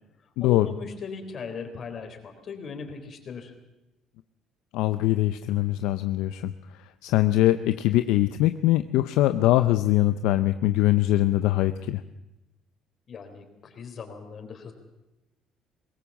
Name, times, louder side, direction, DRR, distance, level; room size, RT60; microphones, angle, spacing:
voice 1, 0.4-3.5 13.1-14.7, left 5 dB, 45° left, 6 dB, 3.8 m, -38 dB
voice 2, 4.7-6.5 7.0-12.0, left 15 dB, 85° left, 10 dB, 0.6 m, -22 dB
21.5 x 18.0 x 7.3 m, 0.96 s
cardioid pair, 105°, 0 cm